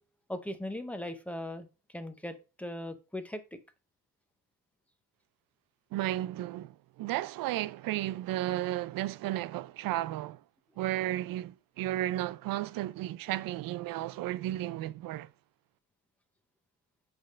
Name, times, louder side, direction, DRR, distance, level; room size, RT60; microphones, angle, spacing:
voice 1, 0.3-1.7 1.9-3.6, left 1 dB, 5° left, 0.7 m, -39 dB
voice 2, 5.9-10.4 10.8-15.3, right 14 dB, 75° right, 0.5 m, -33 dB
7.8 x 3.5 x 5.0 m
cardioid pair, 145°, 35 cm